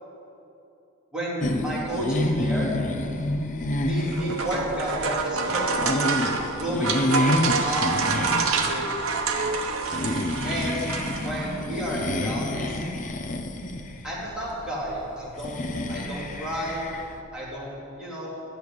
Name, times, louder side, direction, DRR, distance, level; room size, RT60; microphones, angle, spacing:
voice 1, 1.1-2.7 3.9-6.1 6.6-9.1 10.4-10.8 11.2-12.8 14.0-15.6 15.9-16.9 17.3-18.3, equal, 5° right, -8 dB, 3.4 m, -31 dB
sound 1, 1.4-17.2, left 1 dB, 40° left, 0.8 m, -29 dB
sound 2, 4.0-11.6, right 4 dB, 85° right, 1.0 m, -27 dB
12.5 x 6.9 x 9.6 m, 2.8 s
head